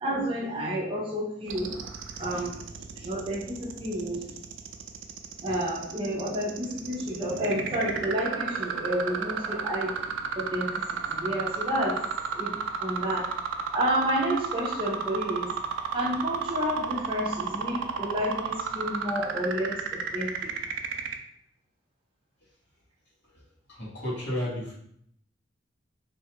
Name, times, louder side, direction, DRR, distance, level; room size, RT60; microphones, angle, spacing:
voice 1, 0.0-1.7 2.2-2.6 3.0-4.3 5.4-9.9 10.4-10.7 11.1-12.0 12.4-12.5 12.8-13.3 13.7-15.5 15.9-20.3, equal, 30° right, -3 dB, 0.6 m, -30 dB
sound 1, 1.5-21.1, right 7 dB, 85° right, 0.3 m, -32 dB
voice 2, 23.7-24.7, left 1 dB, 70° left, -7 dB, 1.3 m, -32 dB
2.7 x 2.3 x 2.9 m, 0.70 s
head